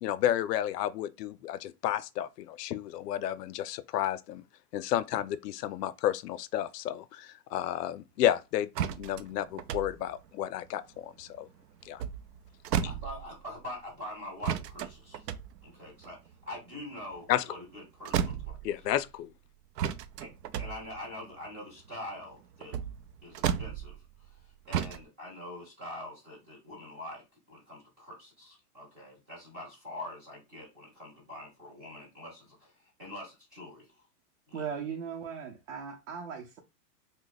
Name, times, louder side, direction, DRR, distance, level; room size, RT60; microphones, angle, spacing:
voice 1, 0.0-4.4 4.7-8.7 9.0-11.5 11.8-12.0 17.3-17.4 18.6-19.3, left 12 dB, 85° left, 0.6 m, -31 dB
sound 1, 8.8-11.4 11.8-13.6 14.4-17.8 18.1-19.1 19.8-24.4 24.7-25.0, right 9 dB, 85° right, 0.6 m, -34 dB
voice 2, 12.8-15.3 15.6-16.2 16.5-18.6 20.2-20.3 20.6-22.8 23.2-33.9 34.5-34.7, left 1 dB, 10° right, 0.4 m, -44 dB
voice 3, 34.5-36.6, right 7 dB, 55° right, 0.8 m, -38 dB
2.9 x 2.1 x 3.9 m
supercardioid pair, 160°, 47 cm